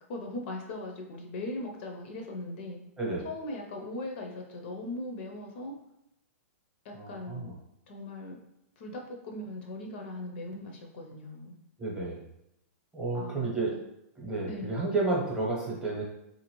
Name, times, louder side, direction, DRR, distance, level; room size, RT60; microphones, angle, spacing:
voice 1, 0.1-2.8 3.2-5.7 6.8-7.5 7.9-8.4 8.8-11.6 13.1-13.8 14.4-14.8, left 1 dB, 45° left, 2 dB, 0.5 m, -39 dB
voice 2, 6.9-7.5 11.8-12.2 12.9-13.7 14.2-16.0, right 3 dB, 10° right, -3 dB, 0.8 m, -31 dB
3.9 x 2.5 x 3.0 m, 0.82 s
hypercardioid pair, 155°, 8 cm